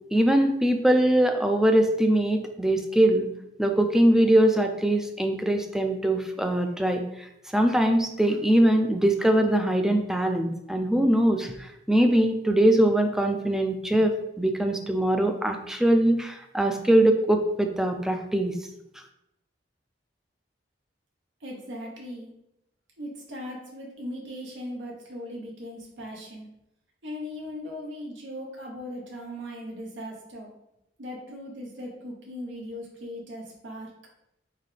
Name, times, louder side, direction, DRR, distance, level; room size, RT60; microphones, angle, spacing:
voice 1, 0.1-3.3 3.6-7.3 7.5-18.5, right 1 dB, 5° right, 5 dB, 0.3 m, -22 dB
voice 2, 21.4-22.3 23.0-26.5 27.0-30.5 31.0-33.9, left 1 dB, 80° right, -1 dB, 0.8 m, -38 dB
3.9 x 3.2 x 3.2 m, 0.84 s
head